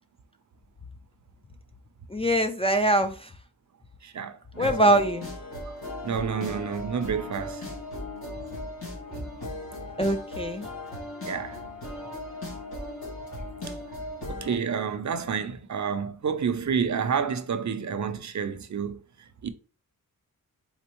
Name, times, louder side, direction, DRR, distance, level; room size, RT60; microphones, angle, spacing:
voice 1, 2.1-3.3 4.6-5.3 10.0-10.7, right 1 dB, 15° left, 0.3 m, -23 dB
voice 2, 4.0-4.9 5.7-5.8 6.0-7.7 9.1-9.3 11.2-11.6 14.3-19.5, right 6 dB, 50° right, 0.5 m, -30 dB
sound 1, 4.5-14.5, left 1 dB, 90° left, 2.0 m, -37 dB
4.3 x 3.8 x 3.0 m
wide cardioid pair, 120°, 36 cm